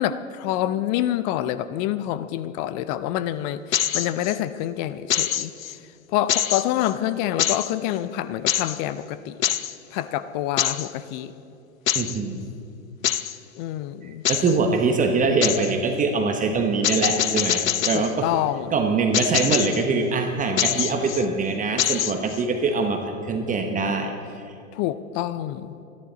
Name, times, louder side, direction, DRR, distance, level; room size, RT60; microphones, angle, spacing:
voice 1, 0.0-5.5 6.1-9.4 9.9-11.3 13.6-14.2 17.9-18.9 24.7-25.7, left 12 dB, 35° left, 13 dB, 0.5 m, -27 dB
sound 1, 3.7-4.4 5.1-5.8 6.3-6.9 7.4-7.7 8.5-8.8 9.4-9.7 10.6-10.9 11.9-12.2 13.0-13.4 14.3-14.6 15.4-15.7 16.8-18.1 19.1-19.8 20.6-21.3 21.8-22.4, left 11 dB, 85° left, 0.6 m, -24 dB
voice 2, 11.9-12.4 14.0-18.3 18.7-24.5, right 4 dB, 20° right, 4 dB, 1.0 m, -23 dB
27.0 x 10.5 x 4.0 m, 2.6 s
hypercardioid pair, 105°, 39 cm